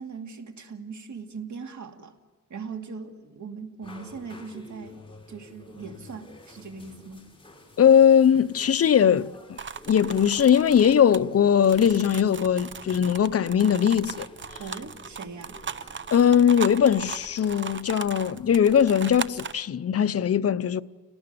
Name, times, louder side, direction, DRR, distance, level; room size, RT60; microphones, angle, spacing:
voice 1, 0.0-2.2 2.5-7.3 14.6-15.6, right 5 dB, 60° right, 2.5 m, -40 dB
sound 1, 3.8-19.0, left 2 dB, 15° left, 4.4 m, -50 dB
voice 2, 7.8-9.6 9.9-14.3 16.1-20.8, left 8 dB, 45° left, 0.7 m, -20 dB
sound 2, 9.6-19.5, right 6 dB, 35° right, 0.7 m, -37 dB
29.5 x 19.0 x 6.8 m
wide cardioid pair, 110°, 32 cm